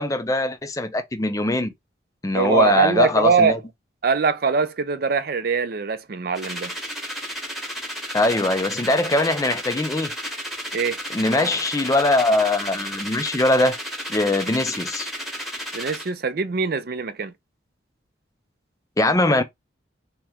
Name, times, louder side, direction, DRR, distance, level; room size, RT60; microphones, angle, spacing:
voice 1, 0.0-1.7 2.2-3.6 8.1-10.1 11.1-13.8 14.1-15.1 19.0-19.4, left 2 dB, 20° left, 0.4 m, -21 dB
voice 2, 2.3-3.6 4.0-6.7 10.7-11.0 15.7-17.3, right 5 dB, 55° right, 0.5 m, -22 dB
sound 1, 6.3-16.1, equal, ahead, 1.0 m, -32 dB
3.6 x 3.0 x 3.4 m
head